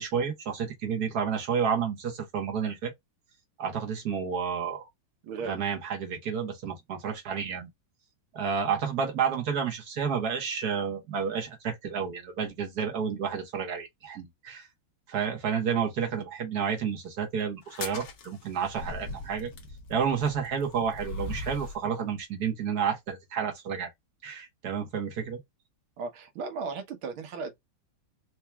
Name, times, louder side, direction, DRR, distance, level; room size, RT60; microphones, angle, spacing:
voice 1, 0.0-2.9 3.6-4.9 5.4-7.7 8.3-14.7 15.1-19.5 19.9-23.9 24.2-25.4, right 7 dB, 55° right, 1.6 m, -30 dB
voice 2, 5.2-5.6 26.0-27.5, right 4 dB, 90° right, 1.9 m, -36 dB
sound 1, 17.6-21.8, left 3 dB, 60° left, 1.5 m, -40 dB
4.5 x 2.8 x 2.3 m
omnidirectional pair, 2.2 m